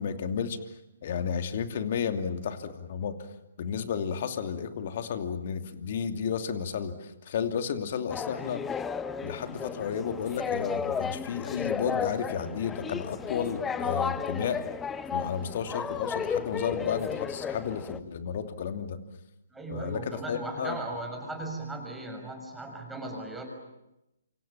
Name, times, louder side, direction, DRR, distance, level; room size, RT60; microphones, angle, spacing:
voice 1, 0.0-3.2 3.6-8.6 9.2-14.6 15.1-19.0 19.7-20.8, left 7 dB, 50° left, 7 dB, 2.8 m, -32 dB
sound 1, 8.1-18.0, left 6 dB, 10° left, 1.0 m, -33 dB
voice 2, 19.5-23.4, right 2 dB, 5° right, 2 dB, 6.5 m, -37 dB
28.0 x 26.0 x 7.4 m, 0.90 s
figure-of-eight pair, 135°, 0 cm